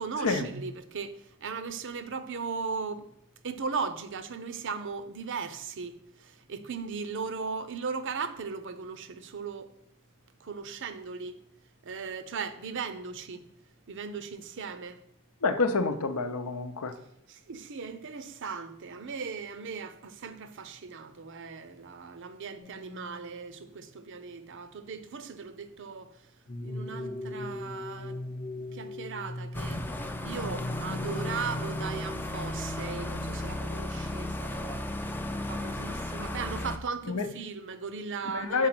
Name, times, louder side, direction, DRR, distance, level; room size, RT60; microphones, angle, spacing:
voice 1, 0.0-3.1 3.4-9.7 10.4-11.4 11.8-13.4 13.9-15.0 17.3-26.1 26.6-28.2 28.6-29.8 30.2-34.9 35.5-38.7, right 5 dB, 55° right, 0.6 m, -37 dB
voice 2, 15.4-16.9 37.1-37.3 38.3-38.7, left 4 dB, 75° left, 0.7 m, -28 dB
sound 1, 22.6-23.6 26.5-33.5, left 1 dB, 35° left, 0.8 m, -39 dB
sound 2, 29.5-36.8, left 1 dB, 10° left, 0.4 m, -34 dB
6.4 x 4.8 x 5.9 m
head